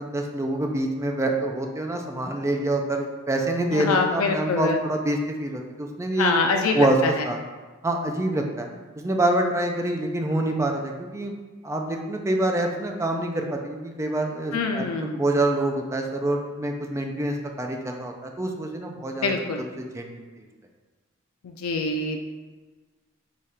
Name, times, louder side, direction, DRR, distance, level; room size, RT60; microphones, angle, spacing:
voice 1, 0.0-6.4 6.7-7.0 7.3-7.4 7.8-8.7 9.0-11.3 11.6-19.3 19.8-20.2, right 1 dB, 15° right, 2 dB, 0.4 m, -26 dB
voice 2, 3.7-4.8 6.2-7.2 14.5-15.1 19.2-19.6 21.4-22.2, left 4 dB, 85° left, 3 dB, 0.4 m, -25 dB
4.9 x 2.3 x 4.2 m, 1.3 s
head